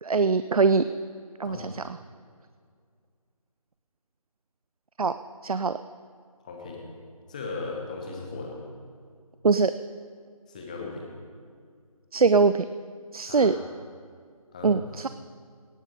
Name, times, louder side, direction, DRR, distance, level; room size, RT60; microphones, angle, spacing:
voice 1, 0.0-0.9 1.4-1.8 5.0-5.2 5.4-5.8 9.4-9.7 12.1-12.7 13.1-13.5 14.6-15.1, right 4 dB, 70° right, 12 dB, 0.4 m, -22 dB
voice 2, 6.4-6.8 7.3-8.6 10.5-11.1 13.2-13.7 14.5-14.8, left 3 dB, 10° left, 0 dB, 0.9 m, -37 dB
18.0 x 7.4 x 5.1 m, 2.1 s
figure-of-eight pair, 155°, 19 cm